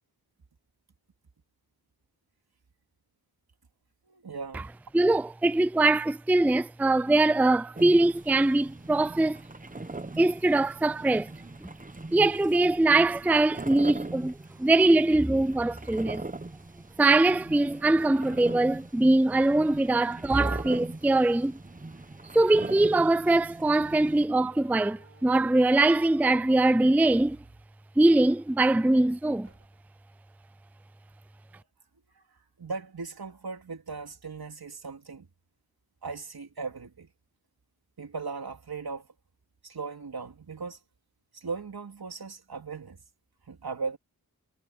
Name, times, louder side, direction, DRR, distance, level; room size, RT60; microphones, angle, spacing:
voice 1, 4.1-4.7 32.6-35.3 36.0-37.1 38.0-39.1 39.6-40.8 41.3-43.0 43.5-44.0, right 4 dB, 75° right, 3.6 m, -38 dB
voice 2, 4.9-9.4 10.2-11.3 11.6-11.7 12.1-16.2 17.0-21.6 22.3-27.4 28.0-29.5, right 2 dB, 5° right, 0.4 m, -22 dB
sound 1, 7.8-24.3, right 2 dB, 20° right, 1.2 m, -41 dB
Slam, 24.3-25.9 26.9-28.3 28.7-28.8 29.4-30.1, right 3 dB, 40° right, 6.2 m, -58 dB
wide cardioid pair, 80°, 37 cm